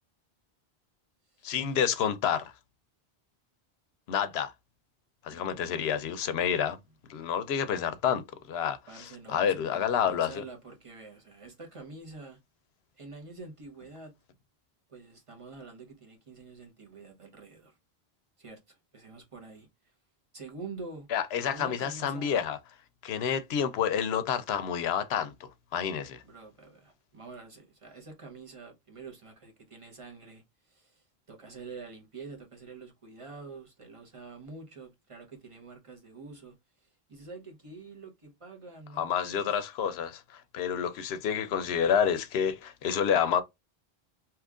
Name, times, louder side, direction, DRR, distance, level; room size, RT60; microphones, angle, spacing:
voice 1, 1.4-2.5 4.1-4.5 5.2-6.8 7.1-8.2 8.5-10.4 21.1-22.6 23.0-26.2 39.0-43.4, left 8 dB, 85° left, 0.8 m, -29 dB
voice 2, 5.3-6.8 8.9-12.4 13.0-14.1 14.9-17.8 18.4-19.9 20.3-21.1 21.5-22.4 26.2-39.6, right 3 dB, 35° right, 1.0 m, -47 dB
3.0 x 2.4 x 3.5 m
omnidirectional pair, 1.0 m